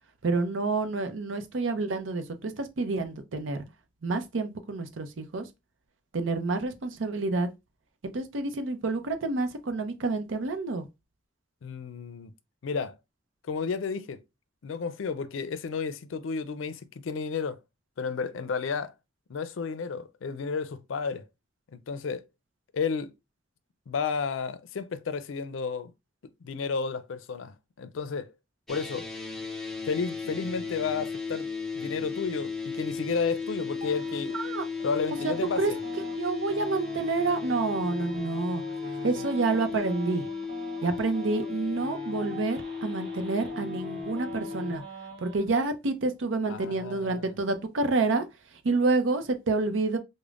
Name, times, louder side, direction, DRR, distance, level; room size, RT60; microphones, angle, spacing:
voice 1, 0.2-3.6 4.0-5.4 6.1-7.5 8.0-10.9 34.3-34.6 35.2-35.7 36.2-38.6 39.0-40.3 40.8-44.8 45.2-48.2 48.6-50.0, right 3 dB, 85° right, 0.6 m, -28 dB
voice 2, 11.6-12.3 12.6-13.0 13.4-14.2 14.6-17.6 18.0-18.9 19.3-21.3 21.7-22.2 22.7-23.1 23.9-25.9 26.4-28.3 28.7-29.1 29.9-31.5 31.7-34.4 34.8-35.8 38.8-39.3 46.5-47.3, left 5 dB, 90° left, 0.4 m, -32 dB
sound 1, 28.7-44.8, left 5 dB, ahead, 0.7 m, -35 dB
sound 2, 33.8-45.4, right 3 dB, 25° right, 1.0 m, -44 dB
5.0 x 2.1 x 2.4 m
head